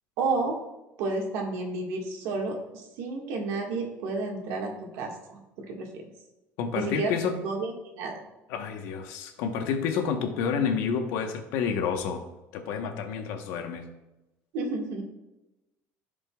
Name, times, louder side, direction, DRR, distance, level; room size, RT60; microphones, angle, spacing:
voice 1, 0.2-0.6 1.0-5.4 5.7-6.0 6.7-7.1 7.4-8.2 14.5-15.0, right 3 dB, 75° right, 0 dB, 1.8 m, -31 dB
voice 2, 6.6-7.4 8.5-12.2 12.5-13.8, left 6 dB, 80° left, 5 dB, 1.1 m, -29 dB
15.0 x 5.2 x 2.4 m, 0.98 s
cardioid pair, 175°, 5 cm